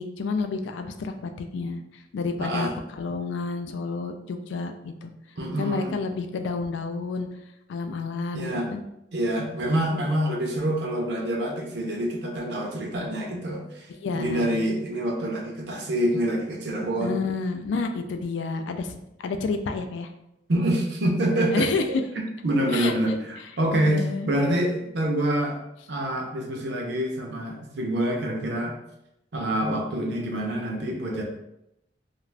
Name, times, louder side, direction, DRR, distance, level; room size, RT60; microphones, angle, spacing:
voice 1, 0.0-5.1 5.6-7.3 7.7-8.8 9.4-9.8 13.9-14.6 17.0-20.1 21.5-21.8 22.7-23.0 23.4-23.5 23.7-24.3, left 4 dB, 75° left, 6 dB, 0.3 m, -30 dB
voice 2, 2.4-2.7 5.4-5.9 8.3-8.7 9.1-13.9 14.1-17.2 20.5-21.7 22.2-25.6 25.9-28.8 29.3-31.2, right 1 dB, 60° right, 1 dB, 0.5 m, -26 dB
2.4 x 2.3 x 3.2 m, 0.84 s
head